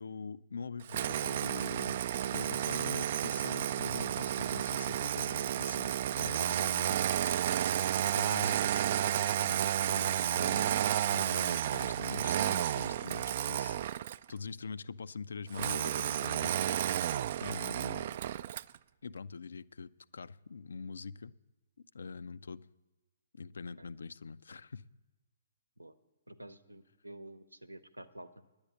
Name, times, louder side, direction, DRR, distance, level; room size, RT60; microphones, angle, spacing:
voice 1, 0.0-5.9 6.2-7.4 8.2-8.7 9.4-13.8 14.3-16.5 17.4-18.2 19.0-21.3 21.9-22.7 23.3-24.9, left 5 dB, 65° left, 16 dB, 0.4 m, -44 dB
Engine starting, 0.9-14.3 15.5-18.8, right 11 dB, 45° right, 0.3 m, -32 dB
voice 2, 26.3-28.3, right 1 dB, 90° right, 11 dB, 0.8 m, -49 dB
10.5 x 8.7 x 8.2 m, 1.1 s
figure-of-eight pair, 125°, 0 cm